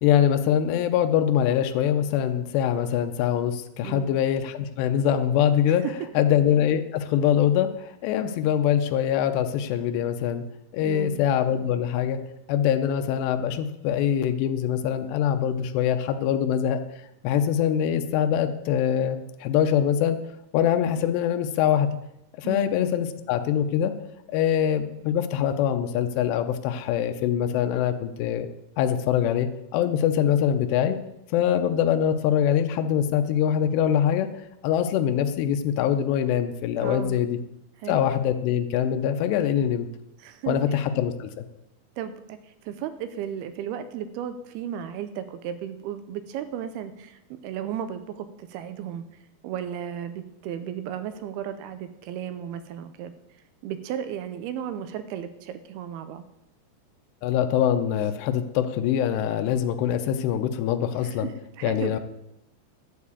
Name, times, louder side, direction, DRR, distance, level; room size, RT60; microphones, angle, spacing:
voice 1, 0.0-5.8 6.2-10.4 10.7-12.2 12.5-16.8 17.2-20.2 20.5-21.9 22.4-23.9 24.3-28.5 28.8-29.5 29.7-31.0 31.3-34.3 34.6-37.4 37.9-39.9 40.5-41.4 57.2-61.3 61.6-62.0, left 9 dB, 80° left, 7 dB, 2.8 m, -23 dB
voice 2, 3.8-4.1 5.8-5.9 10.8-11.2 22.4-22.7 36.8-37.2 37.8-38.0 40.2-40.8 42.0-49.1 49.4-53.1 53.6-56.2 61.0-61.9, right 9 dB, 80° right, 10 dB, 2.4 m, -34 dB
11.5 x 4.7 x 8.3 m, 0.83 s
omnidirectional pair, 4.9 m